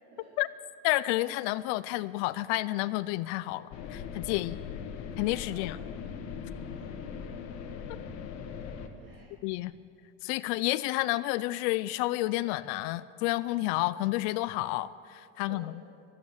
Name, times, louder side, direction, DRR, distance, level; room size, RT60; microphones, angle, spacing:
voice 1, 0.8-4.6 5.2-5.8 9.4-9.7 10.2-15.7, left 18 dB, 85° left, 14 dB, 0.5 m, -30 dB
sound 1, 3.7-8.9, left 6 dB, 55° left, 1.3 m, -40 dB
voice 2, 4.2-4.6 5.3-5.8 6.7-7.4 9.0-9.3 15.4-15.6, right 2 dB, 35° right, -5 dB, 2.8 m, -54 dB
16.0 x 12.0 x 7.1 m, 2.5 s
cardioid pair, 175°, 33 cm